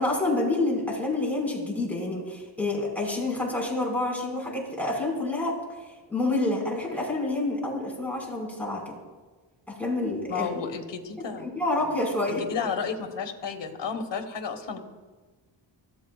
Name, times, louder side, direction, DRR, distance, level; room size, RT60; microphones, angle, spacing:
voice 1, 0.0-5.6 6.1-8.9 9.7-10.6 11.4-12.4, left 2 dB, 5° left, -3 dB, 5.1 m, -28 dB
voice 2, 10.3-11.5 11.8-12.0 12.3-14.8, left 6 dB, 70° left, 4 dB, 1.5 m, -32 dB
24.5 x 14.5 x 2.4 m, 1.3 s
wide cardioid pair, 110°, 45 cm